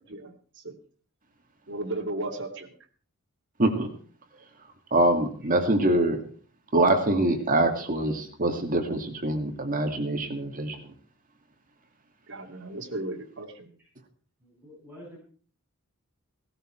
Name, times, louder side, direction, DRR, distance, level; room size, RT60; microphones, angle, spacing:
voice 1, 0.1-0.8 1.7-2.7 12.3-13.7, right 2 dB, 60° right, 2 dB, 2.6 m, -35 dB
voice 2, 4.9-6.2 6.7-10.9, right 1 dB, 40° right, 5 dB, 2.3 m, -24 dB
voice 3, 14.4-15.2, equal, 10° right, -5 dB, 7.9 m, -47 dB
17.5 x 12.5 x 4.5 m, 0.43 s
head